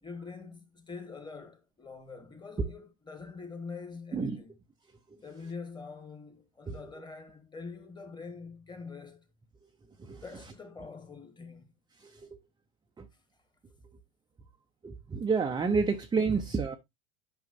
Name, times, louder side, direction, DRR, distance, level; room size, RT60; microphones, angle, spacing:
voice 1, 0.0-4.5 5.2-9.2 10.2-11.7 13.1-13.2, left 4 dB, 10° left, 1.5 m, -44 dB
voice 2, 4.1-4.4 6.7-6.8 10.0-10.2 12.0-12.3 13.0-13.1 14.8-16.8, right 5 dB, 10° right, 0.6 m, -29 dB
9.3 x 5.5 x 2.6 m
supercardioid pair, 120°, 37 cm